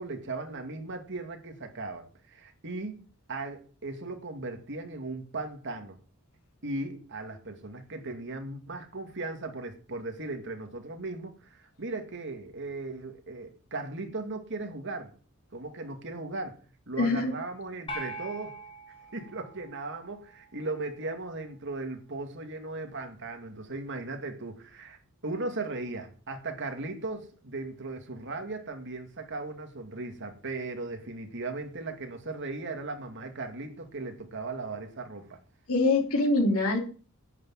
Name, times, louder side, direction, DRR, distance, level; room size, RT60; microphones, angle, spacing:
voice 1, 0.0-3.0 3.3-6.0 6.6-15.1 15.5-16.6 16.9-18.5 19.1-25.0 25.2-35.4, right 3 dB, 60° right, 2.3 m, -37 dB
voice 2, 17.0-17.3 35.7-36.8, left 2 dB, 85° left, 3.0 m, -24 dB
sound 1, 17.9-20.4, right 1 dB, 25° left, 3.4 m, -42 dB
10.5 x 6.2 x 9.0 m
head